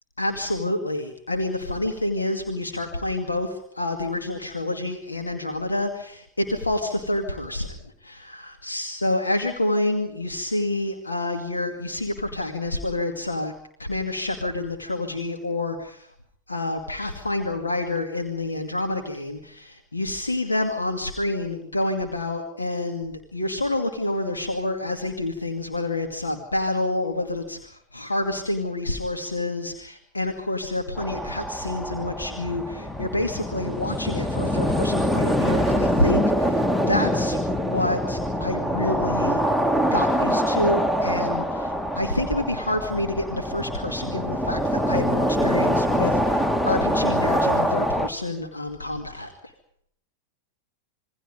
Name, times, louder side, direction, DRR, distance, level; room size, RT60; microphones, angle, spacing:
voice 1, 0.2-13.5 13.8-16.1 16.5-39.4 39.9-49.5, left 2 dB, 80° left, 5 dB, 2.3 m, -28 dB
sound 1, 31.0-48.1, equal, 5° left, 1.1 m, -24 dB
27.0 x 23.0 x 5.2 m, 0.67 s
figure-of-eight pair, 90°, 0 cm